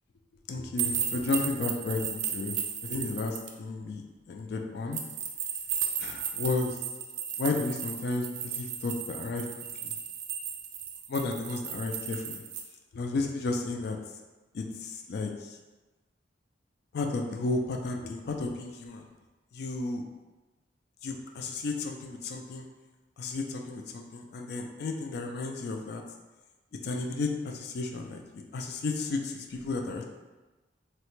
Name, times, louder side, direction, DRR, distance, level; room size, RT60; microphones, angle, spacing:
voice 1, 0.5-5.0 6.0-6.8 7.4-9.5 9.8-9.9 11.1-12.4 12.9-14.0 14.5-15.6 16.9-19.1 19.5-20.0 21.0-22.7 23.2-26.0 26.8-30.0, left 3 dB, 55° left, 3 dB, 0.3 m, -33 dB
sound 1, 0.8-3.5 4.9-12.6, right 8 dB, 75° right, 0.4 m, -34 dB
3.2 x 2.1 x 3.1 m, 1.2 s
head